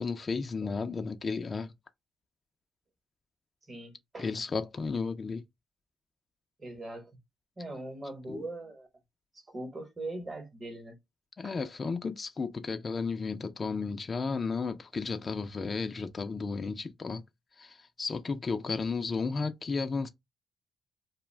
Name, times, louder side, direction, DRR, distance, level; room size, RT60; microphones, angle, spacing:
voice 1, 0.0-1.7 4.2-5.4 8.3-8.5 11.4-17.2 17.6-20.1, left 4 dB, 35° left, 0.4 m, -33 dB
voice 2, 3.7-4.3 6.6-7.1 7.6-8.9 9.5-11.0 11.4-11.5, right 2 dB, 30° right, 1.0 m, -41 dB
2.4 x 2.1 x 3.2 m
cardioid pair, 90°, 0 cm